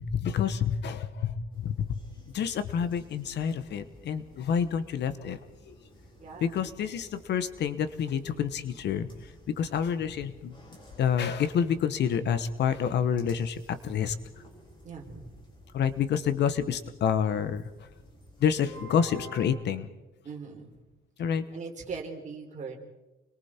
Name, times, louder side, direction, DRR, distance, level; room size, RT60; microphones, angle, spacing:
voice 1, 0.0-2.0 2.3-5.4 5.7-5.8 6.4-9.1 9.5-10.5 11.0-14.1 15.7-17.7 18.4-19.9 21.2-21.4, left 8 dB, 55° left, 12 dB, 1.2 m, -28 dB
sound 1, 1.5-19.5, left 1 dB, 25° left, 5.2 m, -52 dB
voice 2, 6.2-6.6 10.1-10.2 14.8-15.3 20.2-20.7 21.5-22.8, right 5 dB, 35° right, 1 dB, 4.2 m, -40 dB
29.5 x 22.5 x 4.5 m, 1.1 s
cardioid pair, 165°, 21 cm